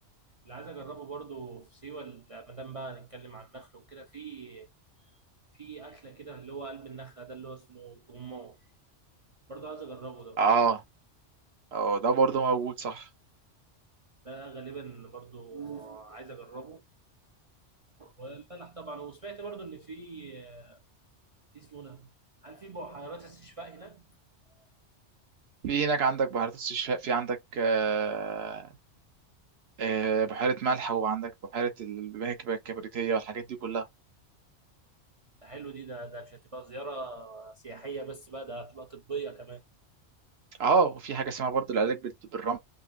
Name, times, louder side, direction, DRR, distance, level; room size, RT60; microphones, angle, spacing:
voice 1, 0.4-4.7 5.0-5.1 5.5-8.6 9.5-10.4 14.2-16.8 18.0-20.8 21.5-22.1 22.4-24.1 35.4-39.6, right 4 dB, 45° right, 0.5 m, -42 dB
voice 2, 10.4-10.8 11.7-13.1 25.6-28.7 29.8-33.9 40.6-42.6, right 5 dB, 60° right, 1.1 m, -28 dB
5.2 x 2.0 x 2.5 m
omnidirectional pair, 1.2 m